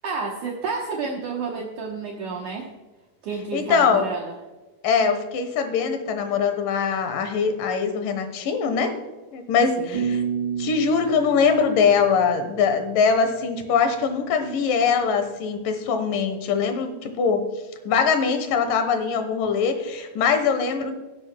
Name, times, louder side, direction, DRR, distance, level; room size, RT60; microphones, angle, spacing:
voice 1, 0.0-2.7 3.2-4.4 9.8-10.1, right 4 dB, 65° right, 0 dB, 2.3 m, -30 dB
voice 2, 3.5-4.1 4.8-9.0 9.3-10.2 10.6-17.4 17.9-20.9, left 6 dB, 75° left, 8 dB, 2.7 m, -22 dB
sound 1, 9.9-12.9, right 7 dB, 15° right, 1.8 m, -30 dB
17.5 x 9.7 x 2.2 m, 1.2 s
omnidirectional pair, 4.1 m